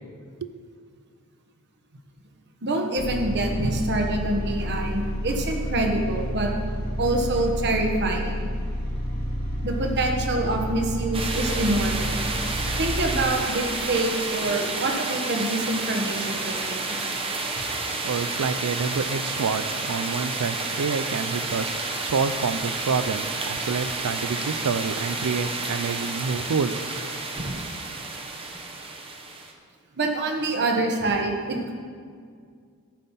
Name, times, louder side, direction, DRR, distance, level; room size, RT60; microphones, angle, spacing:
voice 1, 2.6-6.5 7.0-8.4 9.6-12.2 12.8-17.1 30.0-31.7, right 2 dB, 50° right, 3 dB, 1.2 m, -26 dB
sound 1, 3.0-13.3, equal, 45° left, 2.0 m, -30 dB
sound 2, 11.1-29.5, right 3 dB, 25° right, 0.9 m, -30 dB
voice 2, 18.0-26.8, right 5 dB, 75° right, 14 dB, 0.5 m, -28 dB
13.5 x 5.5 x 5.6 m, 2.1 s
head